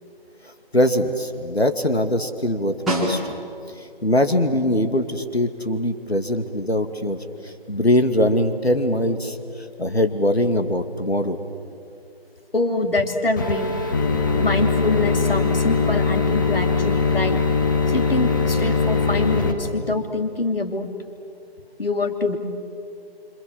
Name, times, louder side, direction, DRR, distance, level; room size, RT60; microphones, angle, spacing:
voice 1, 0.7-3.3 3.8-7.2 7.4-9.4 9.8-11.4, left 1 dB, 85° left, 8 dB, 2.5 m, -22 dB
Snare drum, 2.9-3.8 8.2-8.3, equal, ahead, 1.3 m, -26 dB
voice 2, 12.5-13.7 14.4-17.4 17.9-20.9 21.8-22.4, left 2 dB, 65° left, 6 dB, 3.0 m, -24 dB
sound 1, 13.4-19.5, left 4 dB, 20° left, 1.4 m, -21 dB
27.0 x 26.5 x 7.5 m, 2.5 s
figure-of-eight pair, 155°, 31 cm